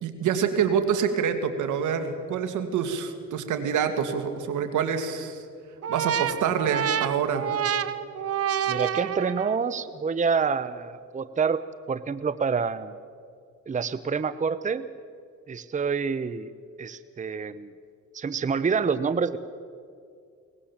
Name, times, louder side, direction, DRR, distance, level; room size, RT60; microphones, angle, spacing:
voice 1, 0.0-5.4 5.9-7.5, right 7 dB, 80° right, 7 dB, 2.3 m, -26 dB
sound 1, 5.8-9.7, right 9 dB, 50° right, 1.0 m, -28 dB
voice 2, 8.7-11.6 11.9-12.9 13.7-14.9 15.5-16.5 16.8-17.7 18.1-19.4, right 5 dB, 25° right, 14 dB, 0.8 m, -27 dB
23.0 x 19.5 x 7.3 m, 2.3 s
cardioid pair, 90°, 30 cm